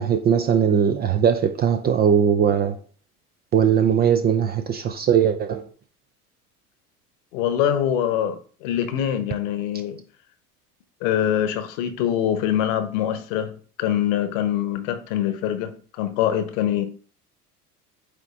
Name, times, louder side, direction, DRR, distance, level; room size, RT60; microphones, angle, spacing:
voice 1, 0.0-2.8 3.5-5.7, right 8 dB, 20° right, 0.4 m, -20 dB
voice 2, 7.3-10.0 11.0-16.9, left 10 dB, 55° left, 1.2 m, -24 dB
8.5 x 3.3 x 3.7 m
figure-of-eight pair, 75°, 46 cm